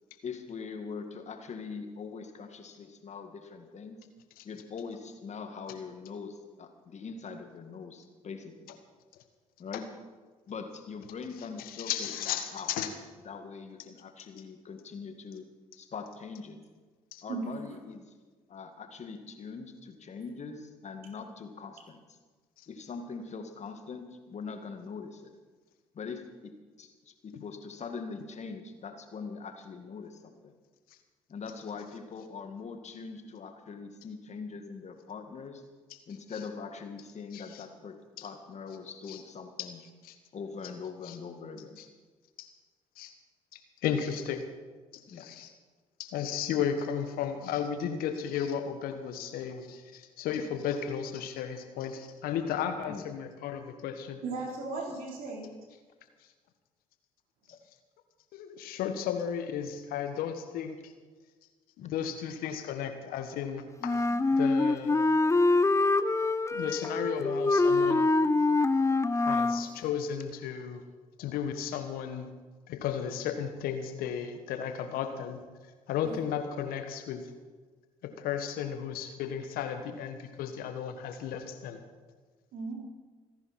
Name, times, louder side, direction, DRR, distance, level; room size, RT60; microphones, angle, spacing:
voice 1, 0.2-4.0 4.4-8.7 9.6-9.9 10.5-12.7 13.2-15.5 15.8-16.6 17.2-18.1 18.5-22.0 22.7-25.3 25.9-30.5 31.3-35.6 36.1-39.8 40.3-41.8 45.1-45.3 52.9-53.0 57.5-57.6 61.8-61.9 64.1-64.2, left 5 dB, 45° left, 6 dB, 2.1 m, -42 dB
voice 2, 11.6-12.9 17.1-17.2 27.3-27.4 37.3-37.6 38.2-38.3 39.1-39.2 39.6-39.7 40.0-40.1 41.1-41.2 41.8-41.9 42.4-42.5 43.0-43.1 43.5-44.4 45.1-45.5 46.0-54.2 58.3-60.9 61.8-64.0 64.3-64.9 66.5-68.1 69.1-70.8 71.2-72.3 72.7-75.4 75.9-77.3 78.0-81.8, left 8 dB, 70° left, 8 dB, 1.5 m, -34 dB
voice 3, 54.2-55.5 76.0-76.2 82.5-82.7, right 3 dB, 65° right, -1 dB, 4.2 m, -36 dB
Wind instrument woodwind instrument, 63.8-69.7, left 3 dB, 20° left, 0.8 m, -25 dB
25.5 x 10.5 x 4.4 m, 1.4 s
hypercardioid pair, 50°, 16 cm